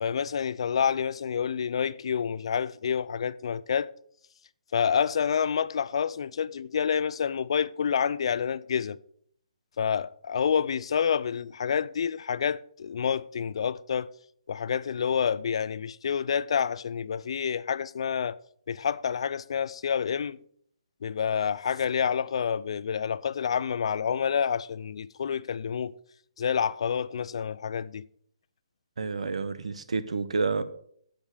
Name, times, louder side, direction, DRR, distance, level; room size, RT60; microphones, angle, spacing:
voice 1, 0.0-3.9 4.7-9.0 9.8-14.1 14.5-18.4 18.7-20.4 21.0-25.9 26.4-28.1, left 7 dB, 55° left, 0.5 m, -28 dB
voice 2, 29.0-30.6, right 4 dB, 65° right, 1.1 m, -29 dB
13.0 x 5.3 x 6.7 m
figure-of-eight pair, 140°, 4 cm